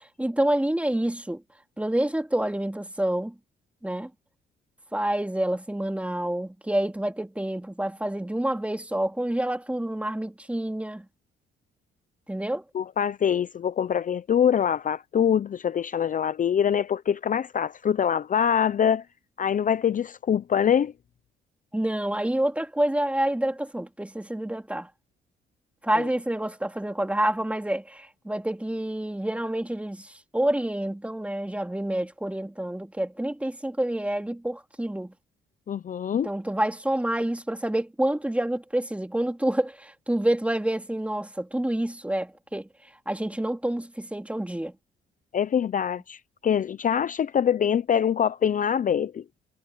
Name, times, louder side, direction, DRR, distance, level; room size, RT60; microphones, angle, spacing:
voice 1, 0.2-1.4 1.8-3.3 3.8-4.1 4.9-11.1 12.3-12.6 21.7-24.9 25.8-35.1 36.2-42.7 43.1-44.7, right 1 dB, 5° right, 2.8 m, -28 dB
voice 2, 12.7-19.0 19.4-20.9 25.9-26.0 35.7-36.3 45.3-49.2, left 8 dB, 40° left, 0.6 m, -24 dB
cardioid pair, 90°, 20 cm